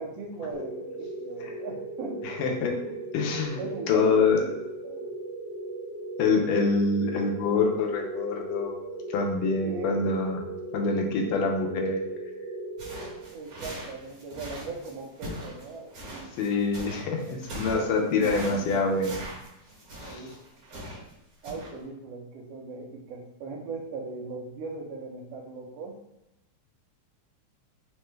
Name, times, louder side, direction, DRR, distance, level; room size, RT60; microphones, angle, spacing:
voice 1, 0.0-2.3 2.6-3.0 3.6-4.6 4.8-5.1 9.6-10.0 13.3-16.4 17.7-19.2 20.1-20.4 21.4-26.0, right 3 dB, 85° right, 0 dB, 1.4 m, -38 dB
sound 1, 0.5-13.7, right 2 dB, 70° left, 1.6 m, -38 dB
voice 2, 2.2-2.7 3.1-3.6 3.9-4.4 6.2-10.4 10.7-12.0 16.4-19.2 20.0-20.2, left 4 dB, 90° left, 2 dB, 2.1 m, -26 dB
sound 2, 12.8-21.1 21.4-21.7, right 1 dB, 55° right, 1.8 m, -41 dB
5.0 x 2.2 x 3.1 m, 0.88 s
omnidirectional pair, 3.6 m